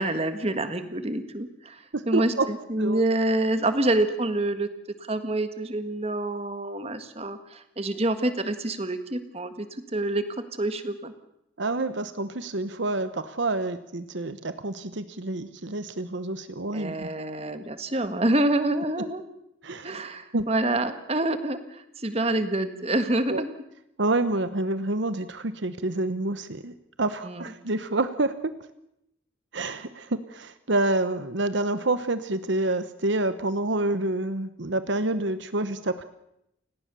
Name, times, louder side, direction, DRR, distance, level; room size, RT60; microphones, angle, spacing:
voice 1, 0.0-1.8 2.0-4.7 5.0-10.2 10.6-11.1 16.7-19.2 19.8-23.5 27.2-27.5, right 1 dB, 30° right, 9 dB, 1.7 m, -27 dB
voice 2, 1.9-2.5 2.8-3.0 11.6-17.1 19.6-20.0 20.3-20.5 23.3-23.4 24.0-26.7 27.0-28.5 29.5-36.0, right 2 dB, 65° right, 12 dB, 1.0 m, -28 dB
29.5 x 18.0 x 6.9 m, 0.82 s
head